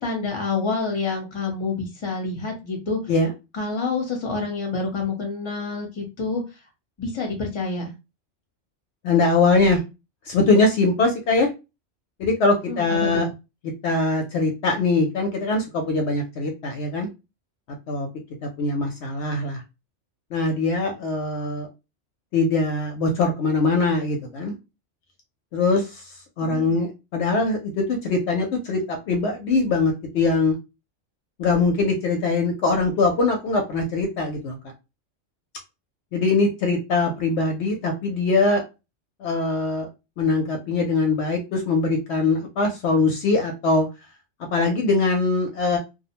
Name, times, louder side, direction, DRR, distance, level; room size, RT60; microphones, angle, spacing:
voice 1, 0.0-3.0 3.5-6.6 7.0-7.9 12.7-12.8 13.1-13.3 26.4-26.8, left 4 dB, 25° left, 1 dB, 0.8 m, -28 dB
voice 2, 9.0-9.8 10.3-11.5 12.2-13.3 13.8-17.1 17.9-18.1 18.4-19.6 20.3-21.7 22.3-24.6 25.5-26.0 26.4-30.6 31.4-34.6 36.1-38.6 39.2-39.9 40.2-43.9 44.5-45.8, left 3 dB, 70° left, 3 dB, 0.8 m, -22 dB
2.5 x 2.0 x 2.7 m, 0.26 s
omnidirectional pair, 1.2 m